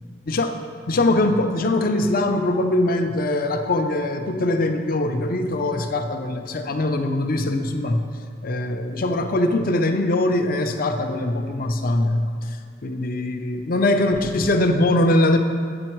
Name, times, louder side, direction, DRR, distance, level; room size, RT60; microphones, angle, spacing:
voice 1, 0.3-0.6 0.9-8.0 8.4-12.6 12.8-15.4, left 1 dB, 50° left, 6 dB, 0.6 m, -22 dB
8.8 x 7.2 x 4.6 m, 2.1 s
head